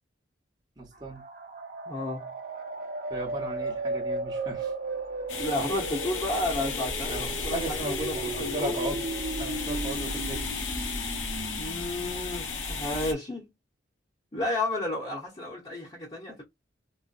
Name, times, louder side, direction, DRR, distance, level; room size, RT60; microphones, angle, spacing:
voice 1, 0.8-1.2 3.1-4.7 7.1-10.7, right 2 dB, 25° right, 0.9 m, -37 dB
sound 1, 1.0-12.6, right 2 dB, 50° right, 0.7 m, -36 dB
voice 2, 1.9-2.3 5.4-8.7 11.6-13.5 14.3-16.4, left 1 dB, 30° left, 0.9 m, -32 dB
sound 2, 5.3-13.1, left 4 dB, 90° left, 0.8 m, -34 dB
4.0 x 2.1 x 2.3 m
head